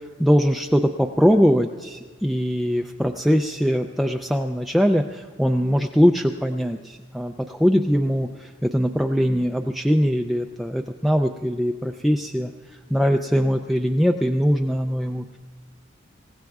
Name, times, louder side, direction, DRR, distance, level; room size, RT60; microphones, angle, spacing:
voice 1, 0.2-12.5 12.9-15.4, equal, ahead, 3 dB, 0.3 m, -21 dB
27.5 x 16.0 x 2.4 m, 1.4 s
head